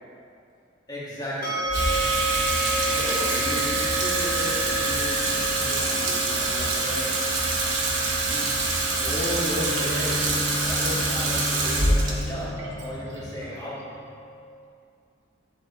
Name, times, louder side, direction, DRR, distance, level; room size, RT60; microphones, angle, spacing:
voice 1, 0.9-1.8 9.0-14.0, equal, 20° left, -8 dB, 1.6 m, -33 dB
sound 1, 1.4-14.4, right 1 dB, 45° left, 1.1 m, -33 dB
Water tap faucet / Sink (filling or washing), 1.7-14.1, right 2 dB, 70° right, 1.2 m, -26 dB
voice 2, 2.8-7.3, equal, 35° right, -6 dB, 1.5 m, -36 dB
Bowed string instrument, 9.3-13.9, left 2 dB, 5° right, 0.9 m, -34 dB
10.5 x 4.6 x 3.6 m, 2.4 s
head